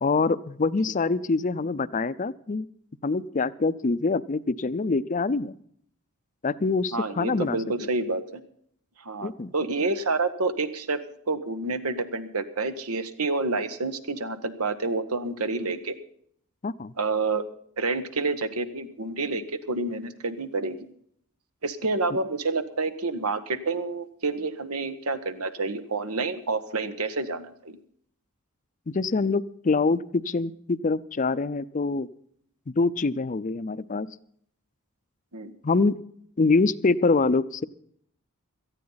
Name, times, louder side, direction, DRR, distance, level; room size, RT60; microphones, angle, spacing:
voice 1, 0.0-2.6 3.0-5.6 6.4-7.6 9.2-9.5 16.6-16.9 28.9-32.1 32.8-34.1 35.6-36.0 36.4-37.6, left 3 dB, 35° left, 16 dB, 0.5 m, -25 dB
voice 2, 6.9-8.4 9.0-16.0 17.0-17.4 17.8-20.8 21.6-27.8 35.3-35.5, right 3 dB, 90° right, 10 dB, 1.4 m, -28 dB
18.0 x 13.5 x 4.0 m, 0.65 s
head